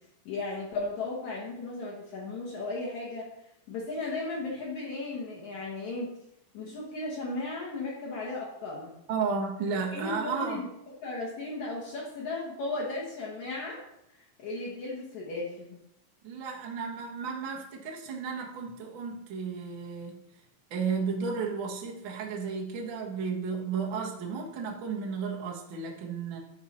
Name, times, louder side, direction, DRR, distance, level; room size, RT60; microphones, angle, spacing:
voice 1, 0.3-3.3 3.7-6.1 6.5-8.9 9.9-10.7 11.0-13.8 14.1-15.8, left 2 dB, 60° left, -6 dB, 2.4 m, -35 dB
voice 2, 9.1-10.6 16.2-20.2 20.7-26.4, right 5 dB, 70° right, -1 dB, 1.1 m, -33 dB
12.0 x 4.5 x 4.3 m, 0.82 s
omnidirectional pair, 4.5 m